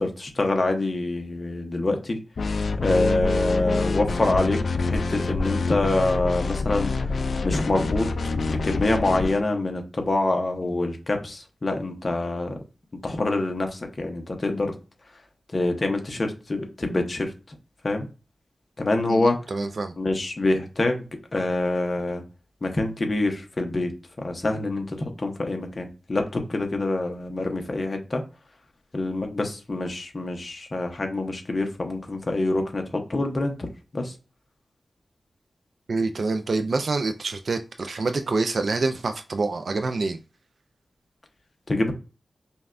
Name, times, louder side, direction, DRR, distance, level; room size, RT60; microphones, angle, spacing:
voice 1, 0.0-2.2 2.8-6.9 7.4-8.1 8.5-12.5 13.0-14.7 15.5-17.6 17.8-18.1 18.8-19.4 20.0-21.1 21.3-22.2 22.6-23.9 24.2-28.2 28.9-33.7 33.9-34.1 41.7-41.9, left 2 dB, 35° left, 0.8 m, -26 dB
sound 1, 2.4-9.4, left 3 dB, 65° left, 0.3 m, -26 dB
voice 2, 19.1-19.9 35.9-40.2, right 3 dB, 60° right, 0.3 m, -26 dB
5.2 x 2.3 x 2.5 m
wide cardioid pair, 105°, 0 cm